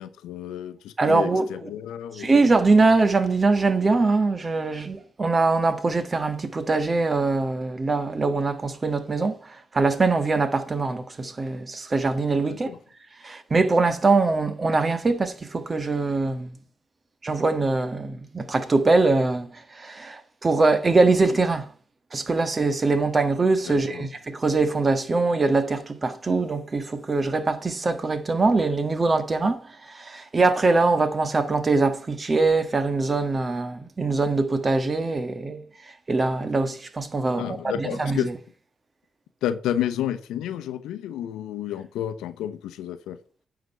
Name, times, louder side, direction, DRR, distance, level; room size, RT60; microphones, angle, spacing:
voice 1, 0.0-2.4 12.5-12.8 23.7-24.1 37.3-38.3 39.4-43.2, left 11 dB, 85° left, 0.7 m, -31 dB
voice 2, 1.0-1.5 2.2-12.7 13.2-16.6 17.2-21.7 22.1-35.6 36.1-38.2, right 3 dB, 40° right, 1.5 m, -23 dB
9.1 x 5.1 x 5.5 m
supercardioid pair, 50°, 0 cm